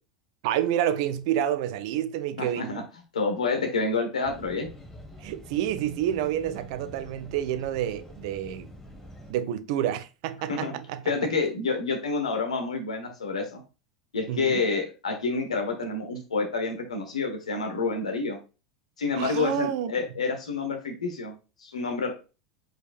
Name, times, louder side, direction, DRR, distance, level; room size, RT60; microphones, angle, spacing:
voice 1, 0.4-2.8 5.2-8.7 9.3-11.1 14.3-14.6 19.2-19.9, right 11 dB, 60° right, 0.5 m, -29 dB
voice 2, 2.4-2.8 3.1-4.7 10.5-10.8 11.1-13.6 14.1-18.4 19.0-22.1, left 4 dB, 80° left, 1.1 m, -28 dB
sound 1, 4.2-9.3, equal, 10° left, 1.6 m, -46 dB
4.7 x 4.4 x 2.4 m
hypercardioid pair, 85°, 4 cm